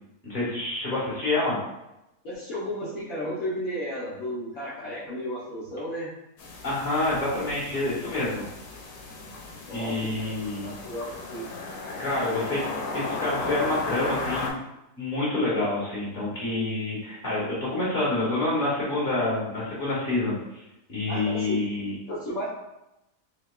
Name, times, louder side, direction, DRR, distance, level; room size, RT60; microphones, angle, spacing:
voice 1, 0.2-1.6 6.6-8.4 9.7-10.7 12.0-14.6 15.0-20.6 20.9-21.9, left 2 dB, 30° left, -8 dB, 1.7 m, -27 dB
voice 2, 2.2-6.1 9.7-10.3 10.6-11.4 21.1-21.6 22.1-22.5, equal, 60° left, -9 dB, 1.3 m, -33 dB
sound 1, 6.4-14.5, left 3 dB, 85° left, 1.3 m, -35 dB
5.8 x 2.3 x 2.4 m, 0.92 s
omnidirectional pair, 1.8 m